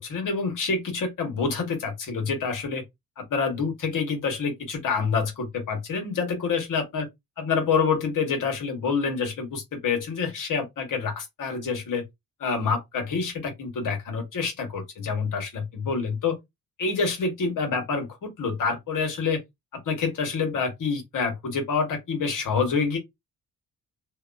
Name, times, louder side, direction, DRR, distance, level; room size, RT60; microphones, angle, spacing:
voice 1, 0.0-2.8 3.2-7.0 7.4-12.0 12.4-16.4 16.8-19.4 19.7-23.0, left 5 dB, 65° left, 1.4 m, -27 dB
2.7 x 2.3 x 2.5 m
cardioid pair, 65°, 34 cm